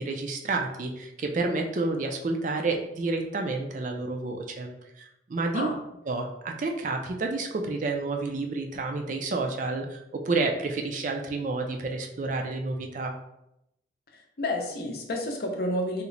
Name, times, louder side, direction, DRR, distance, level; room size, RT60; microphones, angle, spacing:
voice 1, 0.0-5.0 5.3-5.7 6.1-13.1, right 3 dB, 40° right, 3 dB, 0.3 m, -30 dB
voice 2, 14.1-16.0, left 1 dB, 55° left, 2 dB, 0.5 m, -30 dB
2.9 x 2.1 x 3.8 m, 0.83 s
head